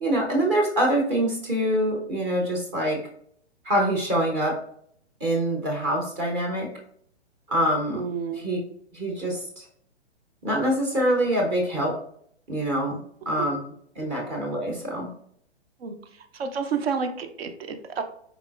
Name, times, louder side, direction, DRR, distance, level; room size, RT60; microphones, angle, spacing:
voice 1, 0.0-3.0 3.6-4.5 5.2-6.7 7.5-8.0 8.3-8.6 8.9-9.6 10.4-11.9 12.5-13.0 13.3-13.6 14.0-15.1, right 1 dB, 25° right, 0 dB, 0.7 m, -25 dB
voice 2, 7.9-8.5 13.4-13.5 15.8-15.9 16.3-18.0, right 6 dB, 65° right, 8 dB, 0.7 m, -30 dB
4.0 x 3.5 x 2.3 m, 0.66 s
hypercardioid pair, 130°, 34 cm